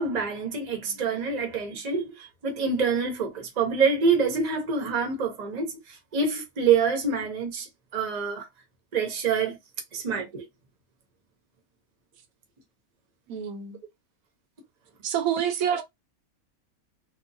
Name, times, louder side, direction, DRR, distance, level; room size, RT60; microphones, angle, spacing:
voice 1, 0.0-5.8 6.1-8.5 8.9-9.6 9.9-10.5 15.7-15.8, right 5 dB, 40° right, 0.7 m, -26 dB
voice 2, 13.3-13.8 15.0-15.8, right 9 dB, 80° right, 1.0 m, -27 dB
2.9 x 2.0 x 2.6 m
omnidirectional pair, 1.5 m